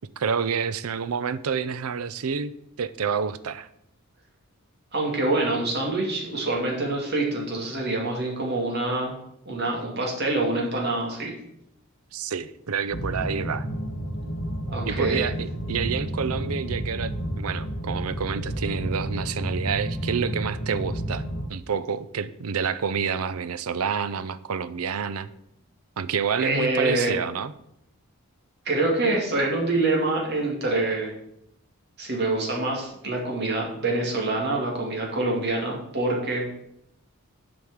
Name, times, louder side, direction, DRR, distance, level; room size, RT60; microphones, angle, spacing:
voice 1, 0.2-2.5 2.8-3.7 12.1-13.7 14.9-21.2 21.5-25.3 26.0-27.5, right 6 dB, 85° right, 15 dB, 0.5 m, -28 dB
voice 2, 4.9-9.1 9.5-11.3 14.7-15.2 26.4-27.2 28.7-31.1 32.0-36.4, right 2 dB, 50° right, -1 dB, 2.4 m, -26 dB
sound 1, 12.9-21.5, right 1 dB, 85° left, 1.6 m, -31 dB
7.9 x 5.3 x 7.2 m, 0.78 s
head